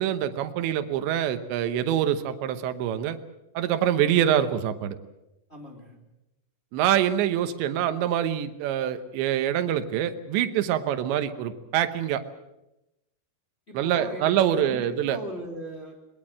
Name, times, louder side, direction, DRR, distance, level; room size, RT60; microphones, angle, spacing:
voice 1, 0.0-3.2 3.5-5.0 6.7-12.2 13.7-15.2, right 10 dB, 85° right, 9 dB, 3.4 m, -25 dB
voice 2, 5.5-6.0 13.7-16.0, equal, 15° left, 0 dB, 3.1 m, -38 dB
22.0 x 22.0 x 7.5 m, 0.92 s
omnidirectional pair, 5.0 m